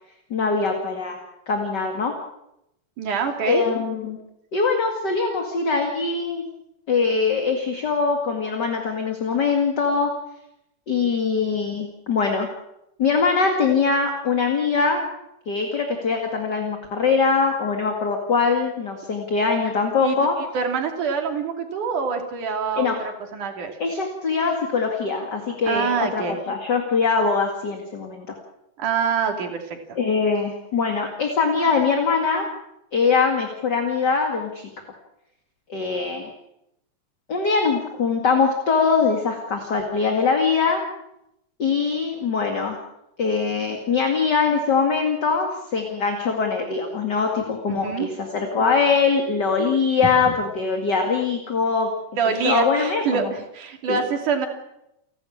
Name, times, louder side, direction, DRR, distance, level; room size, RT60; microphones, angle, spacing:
voice 1, 0.3-1.2 1.5-2.1 3.5-4.2 4.5-6.4 6.9-10.1 10.9-12.5 13.0-15.0 15.5-20.4 22.7-23.0 23.8-28.4 30.0-32.5 32.9-34.7 35.7-36.3 37.3-40.8 41.6-42.8 43.2-51.9 52.4-53.3 53.9-54.0, left 5 dB, 35° left, 3 dB, 2.4 m, -22 dB
voice 2, 3.0-3.6 20.0-20.2 20.5-22.9 23.3-23.7 25.6-26.4 28.8-29.8 47.7-48.1 52.2-53.2 53.5-54.5, right 6 dB, 70° right, 4 dB, 4.2 m, -25 dB
29.5 x 12.5 x 8.7 m, 0.84 s
omnidirectional pair, 3.8 m